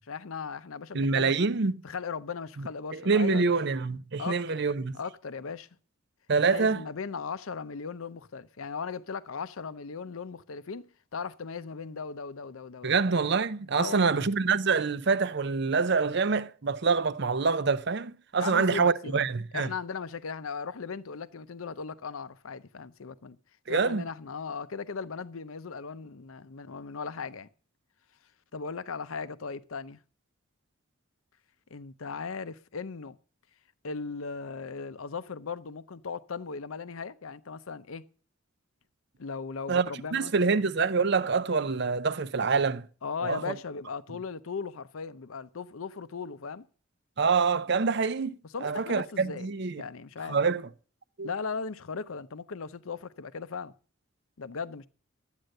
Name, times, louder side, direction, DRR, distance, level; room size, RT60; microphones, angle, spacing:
voice 1, 0.1-1.3 1.8-3.5 4.2-4.6 4.9-5.7 6.5-13.0 13.8-14.2 18.4-19.2 19.5-23.4 23.7-27.5 28.5-30.0 31.7-33.2 33.8-38.1 39.2-40.6 43.0-46.6 48.5-49.5 49.8-50.4 51.2-53.7 54.4-54.9, left 5 dB, 80° left, 0.7 m, -37 dB
voice 2, 0.9-1.7 2.6-5.0 6.3-6.8 12.8-19.7 23.7-24.0 39.7-42.9 43.2-43.5 47.2-48.4 48.6-49.8 50.3-50.7 51.2-51.3, right 4 dB, 55° right, 0.6 m, -26 dB
11.5 x 9.1 x 6.5 m
head